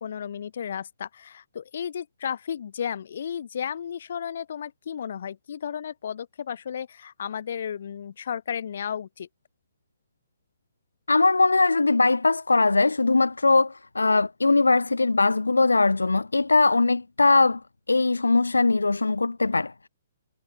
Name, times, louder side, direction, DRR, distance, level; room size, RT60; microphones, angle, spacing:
voice 1, 0.0-9.3, left 8 dB, 55° left, 6.9 m, -33 dB
voice 2, 11.1-17.6 17.9-19.9, left 3 dB, 80° left, 1.1 m, -21 dB
figure-of-eight pair, 125°, 0 cm